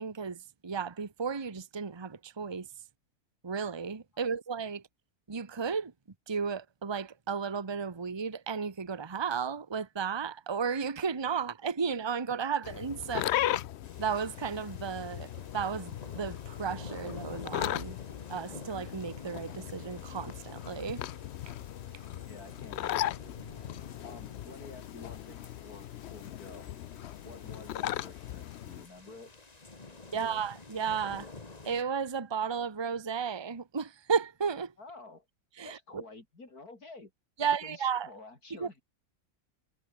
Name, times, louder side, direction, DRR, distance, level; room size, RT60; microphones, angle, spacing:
voice 1, 0.0-2.7 3.4-4.8 5.3-5.9 6.3-13.2 14.0-18.0 18.3-21.0 30.1-31.3 31.6-34.7 35.6-36.0 37.4-38.1 38.6-38.8, right 6 dB, 20° right, 1.0 m, -34 dB
sound 1, 12.6-28.9, left 12 dB, 65° left, 0.7 m, -38 dB
voice 2, 13.1-13.4 22.2-23.4 24.0-26.7 27.2-29.3 29.9-30.4 34.8-35.3 35.6-37.1 37.4-38.8, left 3 dB, 85° left, 5.1 m, -50 dB
sound 2, 13.8-31.8, left 3 dB, 25° left, 1.8 m, -50 dB
omnidirectional pair, 1.6 m